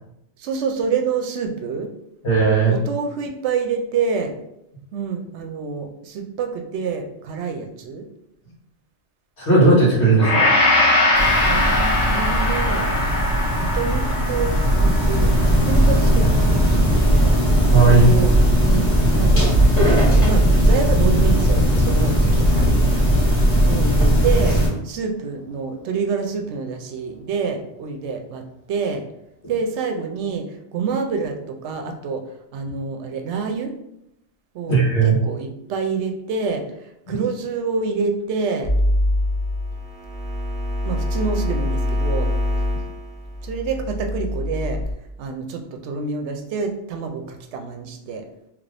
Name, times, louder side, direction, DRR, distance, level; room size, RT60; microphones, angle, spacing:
voice 1, 0.4-1.9 2.7-4.3 4.9-8.0 11.4-12.9 13.6-17.4 17.8-19.6 19.9-23.1 23.6-29.0 29.5-33.7 34.5-38.7 40.8-42.3 43.4-44.8 45.2-48.2, right 5 dB, 75° right, 4 dB, 0.8 m, -27 dB
voice 2, 2.2-2.8 9.4-10.5 17.7-18.1 34.7-35.2, right 4 dB, 65° left, -6 dB, 1.7 m, -15 dB
Gong, 10.2-18.5 19.0-19.1, left 2 dB, 35° left, 0.9 m, -22 dB
sound 1, 11.1-24.7, equal, 85° left, 1.5 m, -17 dB
sound 2, 38.6-44.9, left 1 dB, 5° left, 0.4 m, -24 dB
3.2 x 2.6 x 3.3 m, 0.82 s
omnidirectional pair, 1.2 m